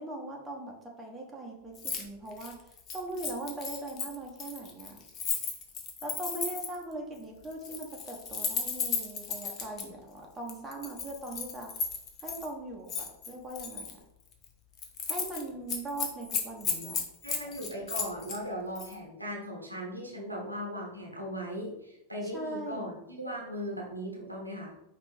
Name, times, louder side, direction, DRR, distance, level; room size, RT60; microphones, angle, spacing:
voice 1, 0.0-2.6 2.9-5.0 6.0-11.7 12.2-14.0 15.1-17.0 22.2-22.9, right 2 dB, 15° right, -1 dB, 1.0 m, -40 dB
Keys jangling, 1.8-2.0 2.3-6.8 7.5-9.8 10.5-12.5 12.9-13.9 14.3-14.5 14.8-15.4 15.7-18.4 18.8-18.9, left 6 dB, 35° left, 0.8 m, -35 dB
voice 2, 17.2-24.7, equal, 85° right, -1 dB, 1.0 m, -38 dB
5.1 x 3.0 x 3.4 m, 0.83 s
figure-of-eight pair, 90°, 0 cm